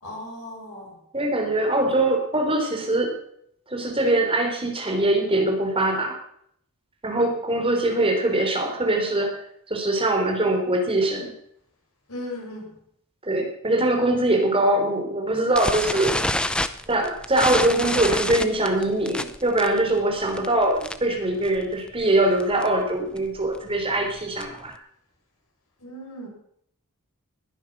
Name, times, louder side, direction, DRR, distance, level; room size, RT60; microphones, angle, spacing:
voice 1, 0.0-1.0 12.1-12.8 25.8-26.3, left 1 dB, 75° left, -1 dB, 6.6 m, -37 dB
voice 2, 1.1-3.1 3.7-6.2 7.0-9.4 9.7-11.3 13.2-16.1 16.9-24.7, right 1 dB, 25° right, 2 dB, 3.7 m, -22 dB
sound 1, 15.5-21.2 21.4-21.7 22.0-22.1 22.4-22.7 23.2-24.7, left 1 dB, 5° left, 0.6 m, -28 dB
20.5 x 11.0 x 6.1 m, 0.70 s
head